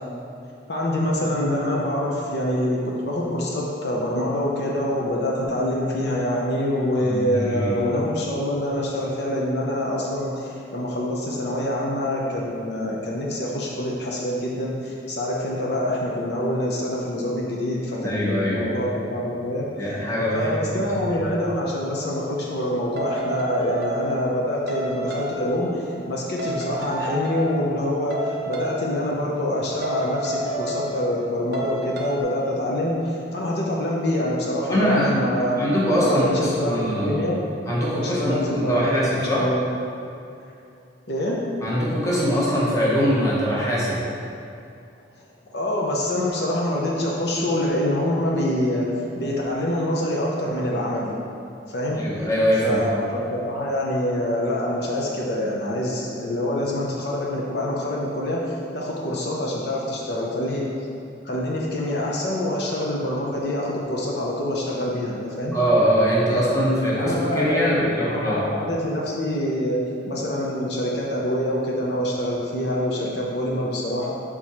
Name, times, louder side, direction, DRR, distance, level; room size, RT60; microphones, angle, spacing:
voice 1, 0.7-19.7 20.3-35.7 36.0-37.4 37.9-39.6 41.1-41.4 45.5-48.9 49.2-51.2 51.7-52.1 52.6-60.7 61.2-65.6 66.3-69.8 70.1-74.1, left 1 dB, 60° left, -3 dB, 0.7 m, -25 dB
voice 2, 7.0-7.8 18.0-18.7 19.8-20.8 21.1-21.2 34.7-37.2 37.7-39.5 41.6-44.0 51.9-52.8 65.5-68.4, equal, 20° left, -7 dB, 1.1 m, -22 dB
sound 1, 23.0-24.4 24.7-25.6 26.4-27.6 28.1-28.8 29.8-31.2 31.5-32.2, right 1 dB, 60° right, 0.7 m, -30 dB
6.2 x 3.7 x 4.2 m, 2.6 s
head